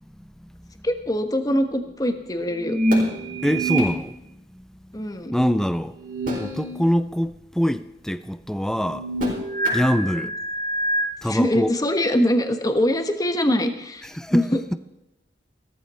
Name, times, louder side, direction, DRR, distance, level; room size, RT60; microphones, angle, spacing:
voice 1, 0.8-2.8 4.9-5.3 10.0-10.2 11.2-14.6, left 1 dB, 20° left, 1.3 m, -23 dB
sound 1, 2.6-3.9 5.9-6.9 7.2-7.3 8.7-11.0, right 1 dB, 50° right, 4.5 m, -25 dB
voice 2, 3.2-4.7 5.3-6.0 6.4-9.1 9.7-10.3 11.2-11.7 14.1-14.5, equal, 5° left, 0.4 m, -24 dB
15.5 x 14.0 x 4.3 m
head